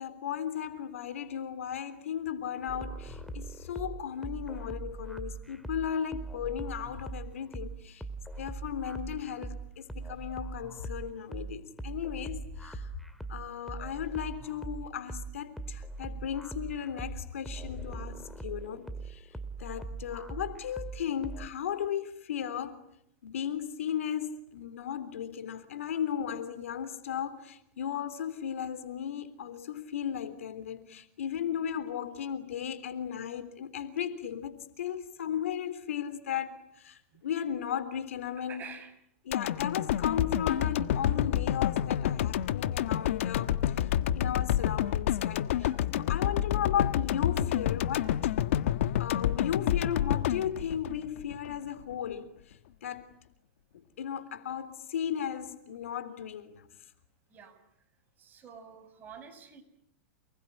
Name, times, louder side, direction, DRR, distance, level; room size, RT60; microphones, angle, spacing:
voice 1, 0.0-8.0 8.4-12.9 13.3-19.3 19.6-22.8 23.2-38.7 39.3-48.2 49.0-53.1 53.7-56.6, left 9 dB, 85° left, 3.5 m, -36 dB
sound 1, 2.7-21.5, right 3 dB, ahead, 2.1 m, -41 dB
voice 2, 38.5-38.9 45.5-45.9 57.3-57.6 58.2-59.6, right 7 dB, 25° right, 6.1 m, -48 dB
sound 2, 39.3-51.5 51.9-52.0, left 11 dB, 70° left, 1.3 m, -29 dB
29.5 x 20.0 x 10.0 m
supercardioid pair, 140°, 7 cm